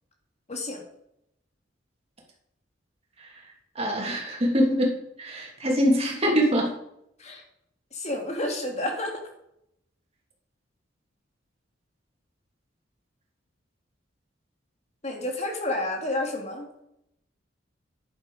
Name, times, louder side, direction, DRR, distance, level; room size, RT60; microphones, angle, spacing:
voice 1, 0.5-0.8 7.2-7.4 7.9-9.2 15.0-16.7, left 1 dB, 35° left, 2 dB, 2.7 m, -30 dB
voice 2, 3.7-6.7, equal, 35° right, -1 dB, 3.2 m, -24 dB
10.5 x 10.5 x 5.1 m, 0.79 s
head